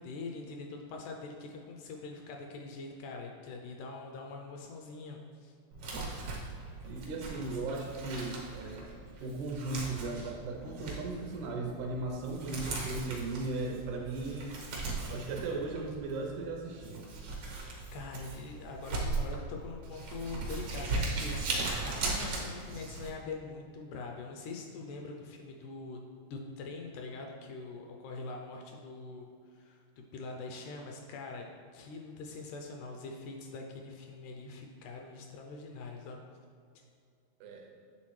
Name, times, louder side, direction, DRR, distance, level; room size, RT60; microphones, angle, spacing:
voice 1, 0.0-5.6 17.5-26.0 26.3-31.4 31.7-36.2, left 3 dB, 80° left, 1 dB, 1.9 m, -43 dB
Crumpling crinkling, 5.7-23.1, right 3 dB, 60° right, 1.6 m, -38 dB
voice 2, 6.8-8.9 9.2-14.6 15.1-17.0 37.4-37.7, right 3 dB, 80° right, 0 dB, 1.9 m, -37 dB
8.5 x 3.7 x 3.1 m, 2.3 s
omnidirectional pair, 3.8 m